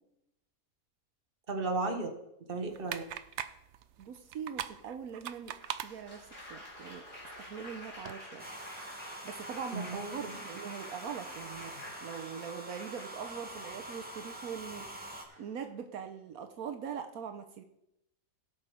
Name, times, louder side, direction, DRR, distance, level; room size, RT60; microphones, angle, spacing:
voice 1, 1.5-2.1 2.5-3.1 9.7-10.4, right 3 dB, 40° right, 4 dB, 1.6 m, -34 dB
sound 1, 2.7-8.1, right 10 dB, 65° right, 0.8 m, -44 dB
voice 2, 4.0-5.5 5.8-7.0 7.4-8.5 9.2-11.7 12.0-17.6, right 7 dB, 80° right, 7 dB, 1.3 m, -42 dB
Applause, 5.6-14.5 15.3-15.7, left 1 dB, 45° left, 3.5 m, -49 dB
Domestic sounds home sounds, 8.4-15.2, right 1 dB, 5° right, 1.5 m, -45 dB
16.0 x 6.2 x 5.0 m, 0.83 s
omnidirectional pair, 1.5 m